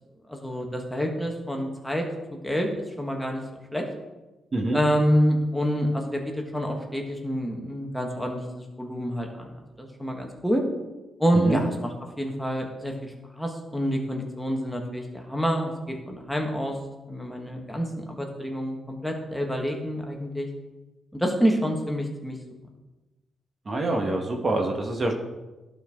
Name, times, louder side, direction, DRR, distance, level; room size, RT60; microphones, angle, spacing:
voice 1, 0.3-2.0 2.4-2.7 3.0-3.4 3.7-3.8 4.7-10.6 11.2-15.7 16.1-16.8 17.1-20.5 21.1-22.4, equal, 5° left, 1 dB, 1.4 m, -27 dB
voice 2, 23.7-25.1, right 2 dB, 40° right, 2 dB, 1.2 m, -26 dB
11.5 x 4.4 x 3.6 m, 1.1 s
cardioid pair, 75°, 0 cm